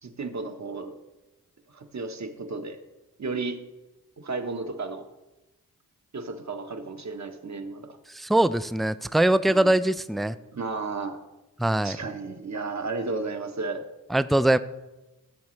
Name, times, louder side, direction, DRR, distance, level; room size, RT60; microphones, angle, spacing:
voice 1, 0.0-0.9 1.7-2.8 3.2-3.6 4.2-5.1 6.1-8.0 9.5-9.7 10.5-11.2 11.8-13.8, right 3 dB, 45° right, 6 dB, 1.2 m, -33 dB
voice 2, 8.1-10.4 11.6-12.0 14.1-14.6, right 1 dB, ahead, 14 dB, 0.3 m, -22 dB
15.0 x 7.2 x 3.2 m, 1.0 s
cardioid pair, 45°, 38 cm